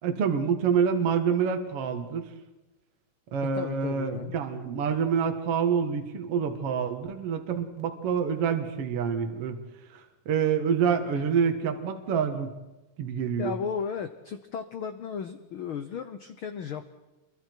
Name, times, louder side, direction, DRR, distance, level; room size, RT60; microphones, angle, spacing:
voice 1, 0.0-2.2 3.3-9.6 9.9-12.5 13.0-13.5, right 7 dB, 50° right, 6 dB, 2.3 m, -27 dB
voice 2, 3.5-4.4 11.1-11.2 13.4-16.9, left 7 dB, 90° left, 9 dB, 1.1 m, -35 dB
28.0 x 23.0 x 4.6 m, 1.1 s
omnidirectional pair, 3.7 m